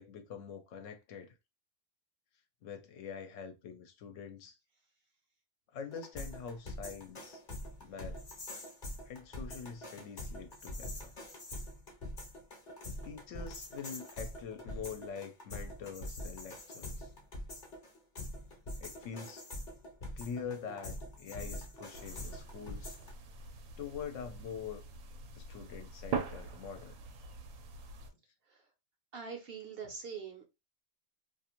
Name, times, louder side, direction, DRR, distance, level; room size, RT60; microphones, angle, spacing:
voice 1, 0.0-1.3 2.6-4.6 5.7-7.4 7.8-8.2 9.0-11.1 13.0-17.1 18.8-19.4 20.2-23.0 23.8-24.8 25.3-27.0, left 6 dB, 70° left, 0.9 m, -45 dB
sound 1, 5.9-23.1, left 1 dB, 40° left, 0.8 m, -44 dB
sound 2, 21.9-28.1, right 5 dB, 90° right, 1.0 m, -43 dB
voice 2, 29.1-30.5, right 6 dB, 55° right, 0.8 m, -43 dB
2.5 x 2.4 x 2.9 m
omnidirectional pair, 1.4 m